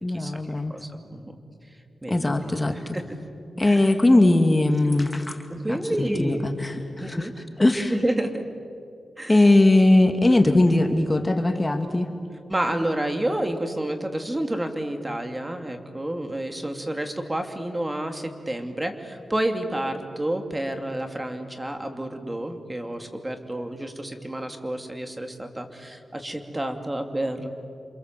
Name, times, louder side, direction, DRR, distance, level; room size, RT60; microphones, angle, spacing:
voice 1, 0.0-0.8 2.1-3.0 3.6-5.4 5.7-8.0 9.3-12.1, left 2 dB, 25° left, 6 dB, 2.2 m, -20 dB
voice 2, 0.7-1.3 2.0-3.0 3.5-3.8 5.5-6.5 7.0-7.3 7.9-8.4 9.2-9.4 12.5-27.5, right 1 dB, 20° right, 5 dB, 3.0 m, -29 dB
29.0 x 26.5 x 7.8 m, 2.4 s
cardioid pair, 60°, 0 cm